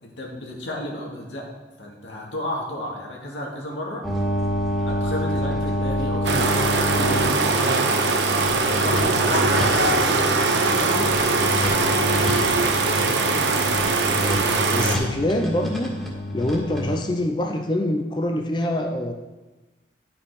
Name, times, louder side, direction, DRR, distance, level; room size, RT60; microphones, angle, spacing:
voice 1, 0.0-1.5 1.8-4.0 4.9-11.2 11.6-13.0, left 1 dB, 90° left, -2 dB, 2.2 m, -33 dB
sound 1, 4.0-17.0, left 1 dB, 5° left, 1.9 m, -27 dB
sound 2, 6.2-15.0, right 3 dB, 75° right, 0.9 m, -21 dB
voice 2, 14.1-16.0 16.3-19.1, left 1 dB, 25° left, 3 dB, 0.6 m, -25 dB
11.0 x 5.8 x 4.9 m, 1.1 s
head